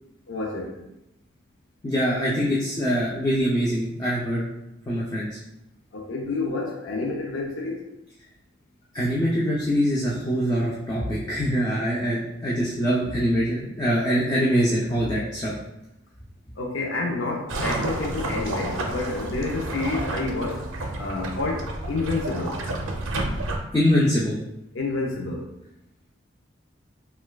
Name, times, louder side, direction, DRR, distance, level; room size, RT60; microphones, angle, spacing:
voice 1, 0.3-0.8 5.9-7.9 16.6-20.6 20.9-22.6 24.7-25.4, left 3 dB, 80° left, -1 dB, 0.5 m, -29 dB
voice 2, 1.8-4.4 4.9-5.3 8.9-15.6 23.7-24.4, equal, 20° left, -6 dB, 0.4 m, -23 dB
sound 1, 17.5-23.6, right 2 dB, 85° right, 0.5 m, -30 dB
4.5 x 2.2 x 2.2 m, 0.87 s
head